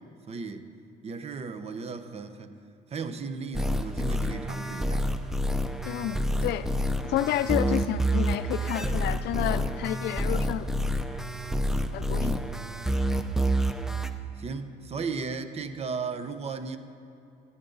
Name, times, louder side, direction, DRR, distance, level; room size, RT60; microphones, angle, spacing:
voice 1, 0.3-0.7 1.0-2.5 2.9-5.1 12.2-12.5 14.4-16.8, right 4 dB, 40° right, 9 dB, 0.9 m, -35 dB
sound 1, 3.5-14.1, equal, 5° right, 0.6 m, -28 dB
voice 2, 5.8-6.7 7.0-10.7 11.9-12.4, left 13 dB, 80° left, 14 dB, 0.5 m, -30 dB
16.5 x 9.6 x 4.0 m, 2.9 s
cardioid pair, 110°, 17 cm